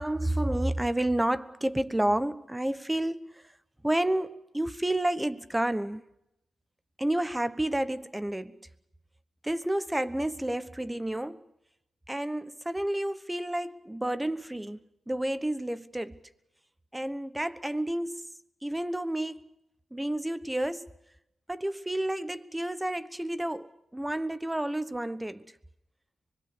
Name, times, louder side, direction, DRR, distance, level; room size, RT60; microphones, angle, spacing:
voice 1, 0.0-3.5 3.8-6.0 7.0-8.6 9.4-11.4 12.1-16.2 16.9-19.4 19.9-20.9 21.5-25.5, right 1 dB, 10° right, 1.1 m, -30 dB
24.5 x 21.5 x 6.8 m
cardioid pair, 65°, 0 cm